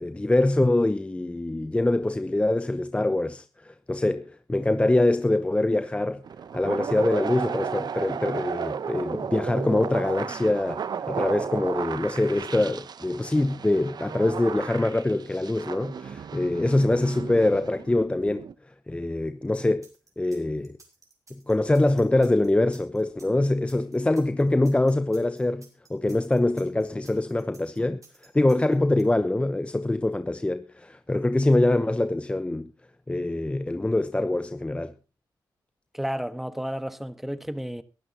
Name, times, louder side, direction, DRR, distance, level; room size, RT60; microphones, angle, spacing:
voice 1, 0.0-6.2 6.5-18.4 18.9-19.9 20.2-20.7 21.5-32.7 33.1-34.9, left 2 dB, 15° left, 0.9 m, -24 dB
sound 1, 6.2-18.5, right 7 dB, 60° right, 0.9 m, -34 dB
sound 2, 19.8-29.0, right 3 dB, 45° right, 6.2 m, -55 dB
voice 2, 35.9-37.8, equal, 5° right, 1.4 m, -32 dB
22.0 x 12.5 x 2.9 m
cardioid pair, 80°, 8 cm